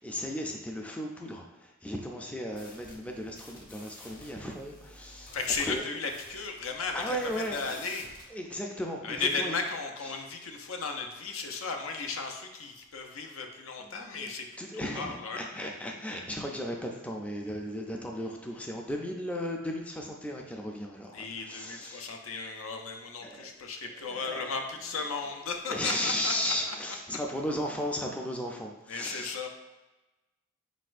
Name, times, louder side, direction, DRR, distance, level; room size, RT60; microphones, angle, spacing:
voice 1, 0.0-5.8 6.9-7.8 8.3-9.6 10.0-10.2 13.8-14.3 14.6-22.1 23.2-23.5 23.8-24.5 25.7-29.4, equal, 5° left, 1 dB, 0.3 m, -35 dB
sound 1, 2.5-8.3, left 1 dB, 45° left, 1.0 m, -51 dB
voice 2, 5.3-8.1 9.0-14.5 14.7-15.4 21.1-26.7 28.9-29.5, left 4 dB, 75° left, 4 dB, 0.6 m, -35 dB
4.5 x 4.1 x 2.5 m, 1.1 s
head